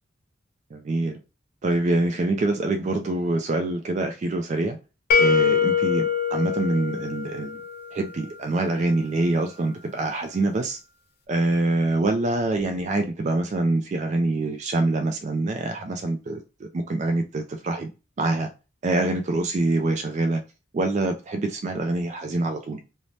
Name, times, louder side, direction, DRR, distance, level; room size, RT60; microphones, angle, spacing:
voice 1, 0.7-1.2 1.6-4.8 5.2-6.0 6.3-7.6 7.9-10.8 11.3-17.9 18.2-18.5 18.8-20.4 20.7-22.8, right 2 dB, 35° right, 0.3 m, -25 dB
sound 1, 5.1-8.0, left 6 dB, 50° left, 0.4 m, -23 dB
2.6 x 2.1 x 3.2 m
head